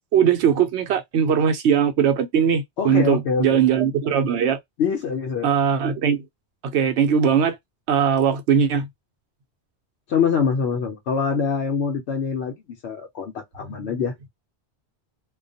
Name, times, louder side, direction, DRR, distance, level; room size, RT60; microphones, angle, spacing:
voice 1, 0.1-4.6 5.4-6.2 6.6-7.6 7.9-8.9, right 7 dB, 80° right, 0.9 m, -20 dB
voice 2, 2.8-3.6 4.8-5.5 10.1-14.1, left 6 dB, 75° left, 0.9 m, -24 dB
2.3 x 2.2 x 2.5 m
omnidirectional pair, 1.1 m